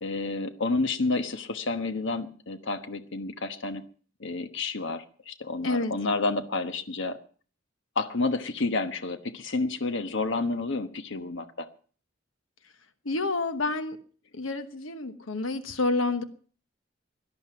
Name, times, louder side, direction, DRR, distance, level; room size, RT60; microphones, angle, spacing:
voice 1, 0.0-3.8 4.2-7.2 7.9-11.7, left 3 dB, 65° left, 9 dB, 1.2 m, -30 dB
voice 2, 13.0-14.0 14.3-16.2, left 3 dB, 85° left, 10 dB, 1.2 m, -28 dB
17.5 x 12.0 x 5.8 m, 0.43 s
head